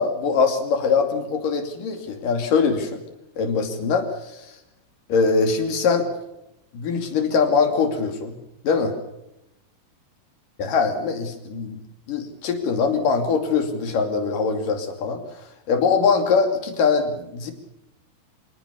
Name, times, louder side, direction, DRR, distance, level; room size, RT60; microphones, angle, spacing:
voice 1, 0.0-3.0 3.4-4.5 5.1-6.1 6.7-8.3 8.6-8.9 10.6-11.8 12.1-15.2 15.7-17.5, left 5 dB, 60° left, 5 dB, 4.2 m, -22 dB
25.5 x 18.5 x 7.0 m, 0.86 s
omnidirectional pair, 4.6 m